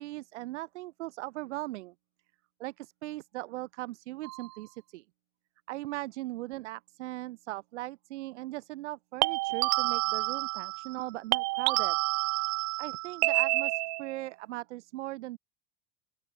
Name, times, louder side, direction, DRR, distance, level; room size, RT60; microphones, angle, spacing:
voice 1, 0.0-1.9 2.6-5.1 5.7-12.0 12.8-15.4, right 18 dB, 80° right, 1.9 m, -39 dB
sound 1, 4.2-4.5 9.2-11.0 11.3-14.2, right 25 dB, 50° right, 1.6 m, -29 dB
open air
supercardioid pair, 130°, 34 cm